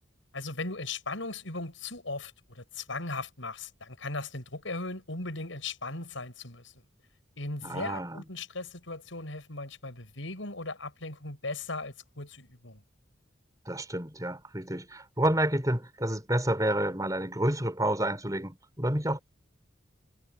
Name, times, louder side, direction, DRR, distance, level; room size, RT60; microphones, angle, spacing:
voice 1, 0.3-6.8 7.4-12.8, left 3 dB, 80° left, 6.5 m, -38 dB
voice 2, 7.6-8.2 13.6-19.2, right 1 dB, 20° right, 4.9 m, -29 dB
head